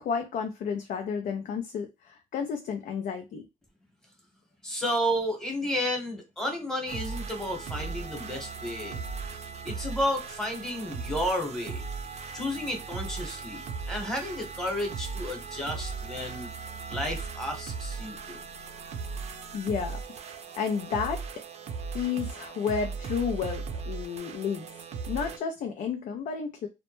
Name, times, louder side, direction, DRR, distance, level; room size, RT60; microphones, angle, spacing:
voice 1, 0.0-3.5 19.5-20.0 20.6-21.3 21.9-24.7 25.1-26.7, left 6 dB, 80° left, 0.4 m, -31 dB
voice 2, 4.6-9.0 9.6-11.8 12.3-16.5 16.9-18.4, equal, 5° left, 0.9 m, -32 dB
sound 1, 6.9-25.4, right 5 dB, 55° right, 0.4 m, -38 dB
2.1 x 2.1 x 2.9 m
cardioid pair, 135°, 13 cm